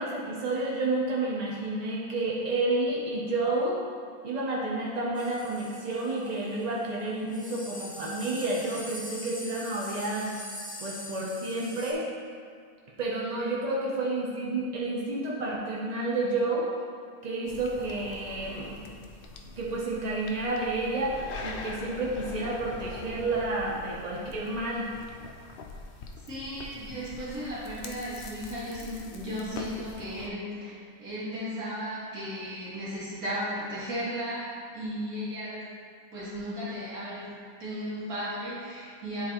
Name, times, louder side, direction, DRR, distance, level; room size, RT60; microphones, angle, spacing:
voice 1, 0.0-3.8 4.2-10.3 10.8-12.1 13.0-16.7 17.2-18.8 19.6-24.9, right 2 dB, 50° right, -4 dB, 0.5 m, -30 dB
sound 1, 5.2-6.6 7.0-7.1 7.3-11.9, left 1 dB, 5° right, 1.1 m, -43 dB
sound 2, 17.5-30.3, left 3 dB, 90° left, 0.4 m, -43 dB
voice 2, 26.3-34.5 34.7-35.7 36.1-39.2, equal, 70° right, -10 dB, 2.3 m, -35 dB
10.0 x 4.0 x 2.9 m, 2.1 s
omnidirectional pair, 1.6 m